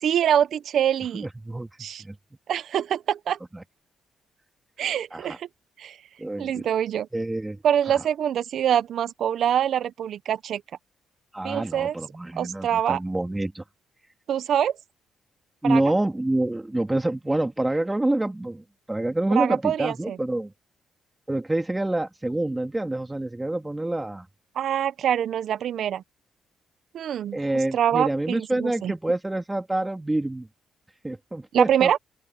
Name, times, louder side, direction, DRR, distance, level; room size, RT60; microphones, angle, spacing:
voice 1, 0.0-1.3 1.8-2.0 2.5-3.4 4.8-5.5 5.8-6.0 6.4-7.1 7.6-10.6 11.4-11.9 12.4-13.0 14.3-14.7 15.6-15.8 19.3-20.2 24.6-26.0 26.9-27.4 27.7-28.9 31.5-32.0, right 9 dB, 65° right, 0.7 m, -24 dB
voice 2, 1.1-1.7 2.0-2.2 3.5-3.6 5.1-5.4 6.2-6.6 7.1-8.0 11.3-13.6 15.6-20.5 21.3-24.3 27.3-30.5 31.0-31.9, right 1 dB, 15° right, 2.3 m, -27 dB
open air
cardioid pair, 90°, 0 cm